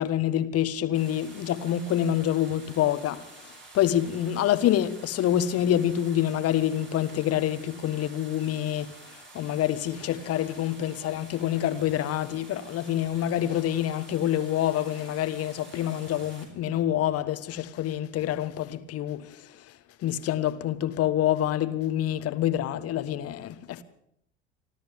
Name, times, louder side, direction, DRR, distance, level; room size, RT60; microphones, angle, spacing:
voice 1, 0.0-23.8, left 11 dB, 45° left, 1.4 m, -27 dB
sound 1, 0.9-16.4, right 2 dB, 35° right, 7.8 m, -49 dB
27.5 x 13.5 x 3.6 m
figure-of-eight pair, 60°, 34 cm